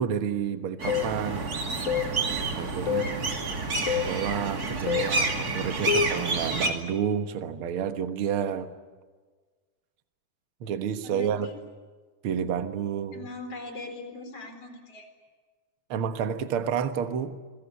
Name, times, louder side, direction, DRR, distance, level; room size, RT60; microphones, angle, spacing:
voice 1, 0.0-1.5 2.3-3.1 4.0-8.7 10.6-11.5 12.2-13.3 15.9-17.4, right 8 dB, 55° right, 8 dB, 1.6 m, -30 dB
sound 1, 0.8-6.7, right 3 dB, 30° right, 2.4 m, -29 dB
sound 2, 0.9-1.1 1.9-2.1 2.9-3.1 3.9-4.1 4.9-5.1 5.9-6.2, left 9 dB, 60° left, 2.6 m, -27 dB
voice 2, 2.8-3.2 11.0-11.5 13.1-15.1, left 2 dB, 40° left, 6 dB, 5.2 m, -41 dB
27.0 x 21.5 x 8.4 m, 1.4 s
omnidirectional pair, 4.0 m